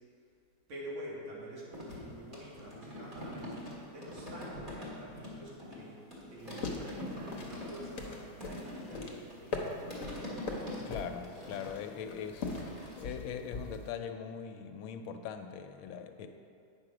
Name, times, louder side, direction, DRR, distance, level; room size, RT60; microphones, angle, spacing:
voice 1, 0.7-6.0 6.3-9.8, equal, 75° right, -6 dB, 2.7 m, -47 dB
sound 1, 1.7-5.8 6.1-13.0, left 1 dB, 25° right, 1.8 m, -44 dB
sound 2, 6.4-13.9, left 3 dB, 50° left, 1.1 m, -41 dB
voice 2, 10.8-12.6 13.0-16.3, left 7 dB, 80° left, 7 dB, 1.4 m, -41 dB
9.1 x 6.1 x 4.9 m, 2.5 s
omnidirectional pair, 2.3 m